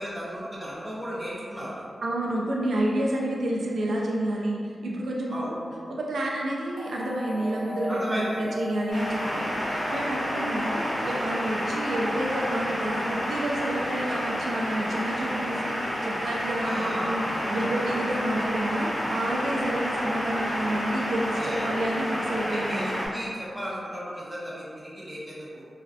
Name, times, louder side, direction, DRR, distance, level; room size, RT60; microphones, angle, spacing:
voice 1, 0.0-1.8 5.3-5.6 7.9-8.5 16.6-17.2 17.5-17.7 21.4-21.7 22.5-25.6, equal, 5° right, -8 dB, 0.6 m, -35 dB
voice 2, 2.0-5.4 6.0-22.9, right 1 dB, 90° right, -3 dB, 0.3 m, -29 dB
sound 1, 6.8-11.0, left 1 dB, 65° left, 0.5 m, -38 dB
sound 2, 8.9-23.1, equal, 45° left, 0.8 m, -30 dB
2.4 x 2.2 x 2.3 m, 2.2 s
wide cardioid pair, 155°, 0 cm